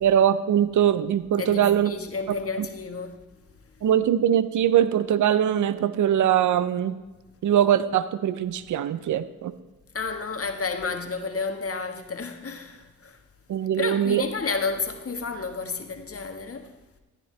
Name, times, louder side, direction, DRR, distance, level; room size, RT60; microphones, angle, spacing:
voice 1, 0.0-1.9 2.3-2.7 3.8-7.0 7.4-9.5 13.5-14.2, right 10 dB, 70° right, 0.7 m, -22 dB
voice 2, 1.4-3.2 9.9-13.2 13.8-16.7, left 4 dB, 45° left, 1.5 m, -31 dB
14.5 x 9.8 x 3.3 m
cardioid pair, 55°, 31 cm